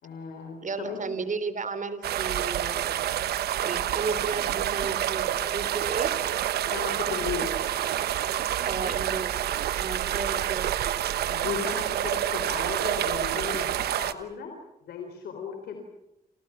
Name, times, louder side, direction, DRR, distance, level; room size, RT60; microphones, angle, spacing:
voice 1, 0.0-1.0 6.7-7.5 11.3-14.5 14.8-15.8, left 6 dB, 90° left, 4 dB, 3.8 m, -35 dB
voice 2, 0.6-3.1 3.6-6.1 8.6-9.4 9.8-10.7, right 4 dB, 55° right, 13 dB, 3.5 m, -34 dB
sound 1, 2.0-14.1, right 11 dB, 90° right, 1.1 m, -28 dB
29.0 x 28.5 x 5.9 m, 0.89 s
supercardioid pair, 50°, 16 cm